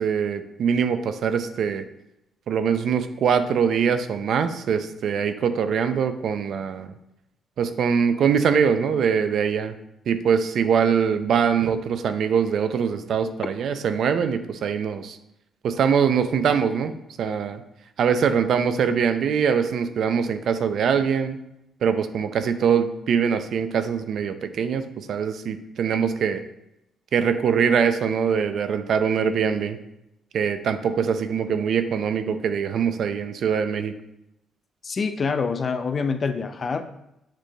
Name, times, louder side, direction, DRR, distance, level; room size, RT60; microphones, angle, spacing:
voice 1, 0.0-1.9 2.5-6.9 7.6-9.7 10.1-15.2 15.6-17.6 18.0-21.4 21.8-26.4 27.1-29.8 30.3-33.9, right 7 dB, 65° right, 10 dB, 0.4 m, -23 dB
voice 2, 34.8-36.9, left 5 dB, 40° left, 9 dB, 0.4 m, -26 dB
7.4 x 3.1 x 2.2 m, 0.84 s
cardioid pair, 90°, 0 cm